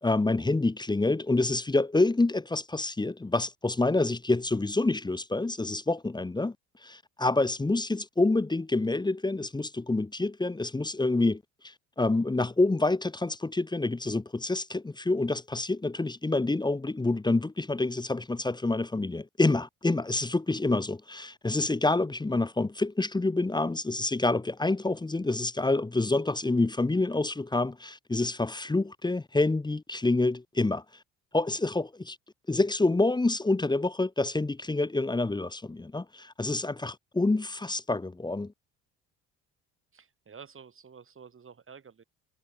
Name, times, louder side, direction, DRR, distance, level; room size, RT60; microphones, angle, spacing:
voice 1, 0.0-6.5 6.8-11.4 12.0-30.8 31.3-32.2 32.5-38.5, left 2 dB, 15° left, 1.1 m, -27 dB
voice 2, 39.9-42.0, right 6 dB, 40° right, 5.2 m, -50 dB
supercardioid pair, 70°, 34 cm